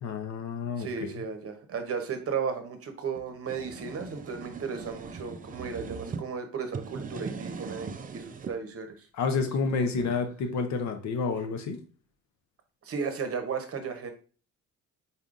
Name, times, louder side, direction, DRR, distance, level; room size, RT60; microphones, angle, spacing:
voice 1, 0.0-1.1 9.1-11.8, left 4 dB, 65° left, 7 dB, 0.7 m, -29 dB
voice 2, 0.8-9.1 9.4-9.5 9.8-10.1 12.8-14.1, right 5 dB, 50° right, 7 dB, 0.8 m, -35 dB
sound 1, 3.1-6.2 6.6-8.6, right 5 dB, 30° right, 0.4 m, -40 dB
4.1 x 3.6 x 2.4 m, 0.38 s
cardioid pair, 90°, 30 cm